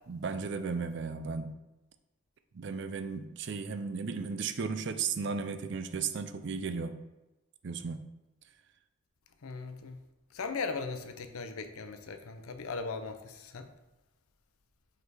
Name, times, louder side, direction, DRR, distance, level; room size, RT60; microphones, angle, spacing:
voice 1, 0.1-1.5 2.5-6.9 7.6-8.0, right 5 dB, 55° right, 9 dB, 0.4 m, -35 dB
voice 2, 9.4-10.0 10.3-13.7, left 4 dB, 90° left, 8 dB, 0.6 m, -38 dB
5.2 x 4.0 x 4.6 m, 1.0 s
head